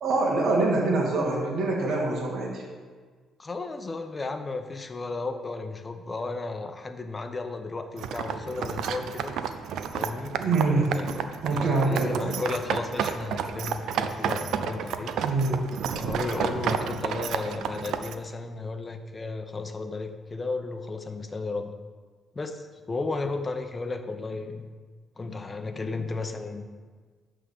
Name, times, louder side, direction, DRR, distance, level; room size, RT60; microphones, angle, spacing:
voice 1, 0.0-2.6 10.4-11.0 11.4-12.3 15.2-15.6, right 3 dB, 60° right, -3 dB, 1.8 m, -25 dB
voice 2, 3.4-9.4 9.9-10.4 11.0-15.1 15.9-21.7 22.3-24.7 25.2-26.7, left 3 dB, 30° left, 7 dB, 0.8 m, -34 dB
sound 1, 8.0-18.1, right 7 dB, 80° right, 0.5 m, -31 dB
11.0 x 3.8 x 6.7 m, 1.5 s
cardioid pair, 90°, 0 cm